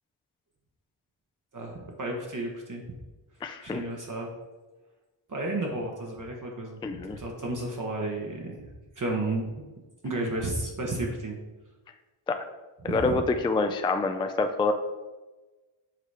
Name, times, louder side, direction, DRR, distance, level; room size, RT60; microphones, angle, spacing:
voice 1, 1.5-3.0 3.6-4.3 5.3-8.7 9.0-9.6 10.0-11.4 12.8-13.1, right 2 dB, 40° right, 0 dB, 1.1 m, -32 dB
voice 2, 3.4-3.8 6.8-7.2 12.3-12.4 12.8-14.7, left 3 dB, 10° left, 7 dB, 0.3 m, -27 dB
7.7 x 3.0 x 4.8 m, 1.2 s
cardioid pair, 85°, 49 cm